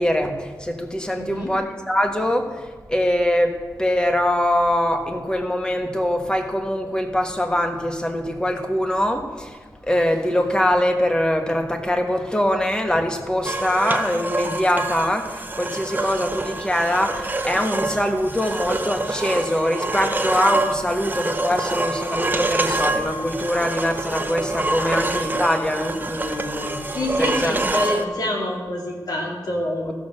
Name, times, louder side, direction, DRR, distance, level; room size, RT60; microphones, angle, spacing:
voice 1, 0.0-9.6 9.9-26.8 27.2-27.6, left 1 dB, 10° left, 4 dB, 1.4 m, -23 dB
voice 2, 1.2-1.5 26.9-29.9, left 1 dB, 65° left, -1 dB, 2.8 m, -26 dB
sound 1, 13.4-28.1, right 2 dB, 25° right, 0.8 m, -26 dB
14.0 x 6.2 x 6.5 m, 1.4 s
wide cardioid pair, 85°, 7 cm